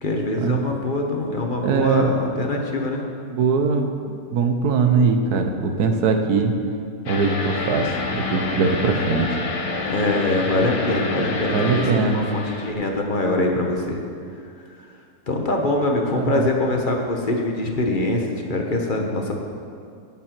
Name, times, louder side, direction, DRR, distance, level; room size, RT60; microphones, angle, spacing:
voice 1, 0.0-3.0 9.9-14.0 15.3-19.3, left 2 dB, 35° left, 1 dB, 1.2 m, -23 dB
voice 2, 1.6-2.0 3.3-6.6 7.1-9.4 11.5-12.3 16.2-16.5, right 5 dB, 75° right, 5 dB, 1.5 m, -21 dB
sound 1, 7.1-12.7, left 3 dB, 70° left, 1.6 m, -28 dB
17.5 x 7.4 x 4.5 m, 2.3 s
omnidirectional pair, 1.7 m